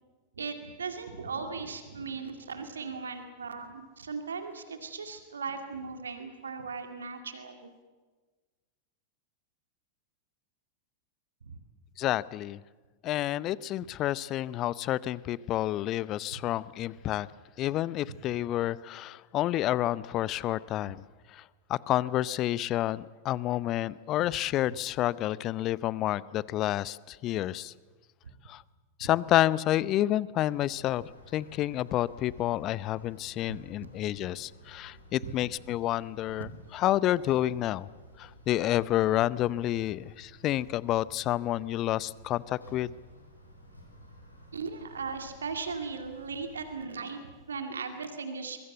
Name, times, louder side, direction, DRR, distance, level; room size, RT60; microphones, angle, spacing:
voice 1, 0.4-7.7 11.4-11.6 16.3-16.4 18.1-18.2 29.0-29.1 33.5-33.6 36.4-36.5 44.5-47.2 47.5-48.6, right 5 dB, 70° right, 6 dB, 2.2 m, -38 dB
voice 2, 12.0-12.6 13.0-17.3 17.6-21.0 21.3-21.4 21.7-27.7 28.5-28.6 29.0-37.9 38.2-42.9, left 14 dB, 35° left, 20 dB, 0.6 m, -29 dB
sound 1, 30.5-46.8, equal, 90° left, 5.2 m, -53 dB
23.5 x 22.5 x 8.0 m, 1.4 s
figure-of-eight pair, 90°, 0 cm